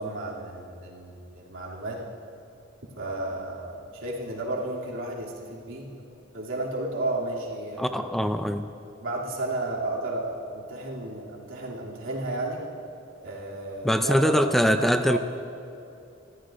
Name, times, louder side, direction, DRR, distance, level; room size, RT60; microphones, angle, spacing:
voice 1, 0.0-2.0 3.0-6.0 6.3-8.1 9.0-12.6 13.2-15.2, right 2 dB, 80° right, -4 dB, 2.7 m, -33 dB
voice 2, 7.8-8.7 13.8-15.2, equal, ahead, 8 dB, 0.4 m, -23 dB
24.0 x 14.5 x 2.5 m, 2.7 s
head